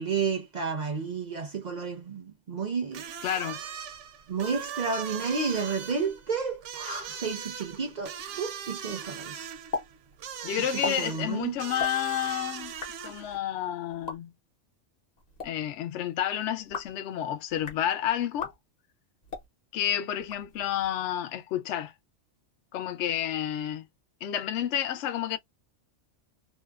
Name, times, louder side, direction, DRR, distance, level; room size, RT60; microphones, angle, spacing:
voice 1, 0.0-3.1 4.3-9.5 10.8-11.6 12.3-12.4, right 5 dB, 50° right, 0.5 m, -31 dB
sound 1, 2.9-13.4, right 8 dB, 75° right, 0.9 m, -40 dB
voice 2, 3.2-3.6 10.4-12.7 13.0-14.3 15.4-18.5 19.7-21.9 22.7-23.8 24.2-25.4, left 10 dB, 75° left, 0.8 m, -30 dB
sound 2, 9.7-9.9 10.1-10.2 10.6-10.9 11.7-11.9 12.6-12.9 13.9-14.2 15.2-15.5 16.5-17.0 17.5-17.8 18.3-18.5 19.2-19.5 20.2-20.9, left 4 dB, 40° left, 0.7 m, -36 dB
2.7 x 2.1 x 2.3 m
omnidirectional pair, 1.3 m